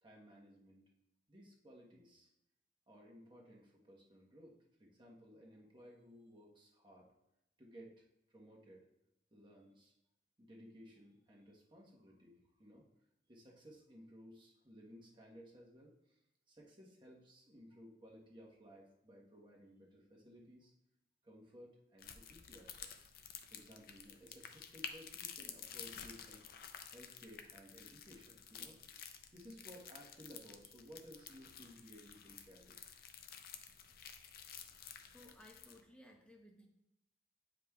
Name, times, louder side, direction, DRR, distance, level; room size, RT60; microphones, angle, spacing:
voice 1, 0.0-0.9 1.3-2.3 2.9-7.1 7.6-8.9 9.3-9.9 10.4-12.9 13.3-16.2 16.5-20.7 21.2-22.9 23.5-26.4 26.9-28.8 29.3-32.8, equal, 25° right, -2 dB, 1.2 m, -58 dB
sound 1, 22.0-35.8, left 8 dB, 55° left, 0.5 m, -52 dB
voice 2, 35.1-36.7, left 1 dB, 5° left, 1 dB, 0.8 m, -59 dB
9.1 x 5.0 x 2.3 m, 0.87 s
head